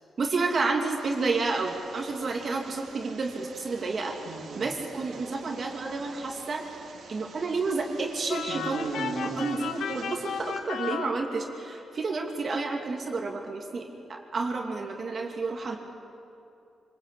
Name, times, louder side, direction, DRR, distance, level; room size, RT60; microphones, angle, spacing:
voice 1, 0.2-4.2 4.6-6.6 7.1-15.8, right 3 dB, 50° right, 1 dB, 2.7 m, -30 dB
sound 1, 1.0-10.6, right 4 dB, 80° right, 3.1 m, -43 dB
sound 2, 8.3-11.8, left 8 dB, 85° left, 1.1 m, -35 dB
25.5 x 20.5 x 8.6 m, 2.6 s
cardioid pair, 95°, 0 cm